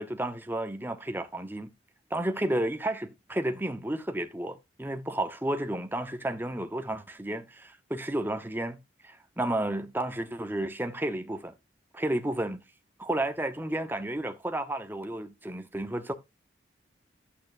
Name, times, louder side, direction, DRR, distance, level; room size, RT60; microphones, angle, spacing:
voice 1, 0.0-1.7 2.1-8.8 9.0-11.5 11.9-12.6 13.0-16.1, right 1 dB, 10° right, 0.9 m, -32 dB
11.0 x 8.6 x 2.6 m
head